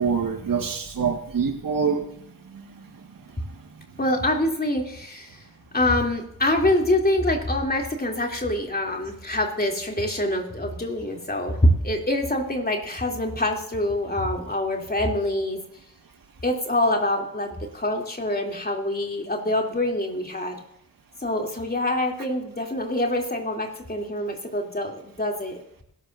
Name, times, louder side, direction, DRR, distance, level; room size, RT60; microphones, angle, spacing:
voice 1, 0.0-2.1 2.5-2.6, right 6 dB, 55° right, 4 dB, 1.9 m, -25 dB
voice 2, 4.0-5.4 5.7-15.6 16.4-20.6 21.2-25.6, left 1 dB, 25° left, 1 dB, 3.1 m, -25 dB
21.0 x 12.0 x 2.7 m, 0.73 s
cardioid pair, 85°, 40 cm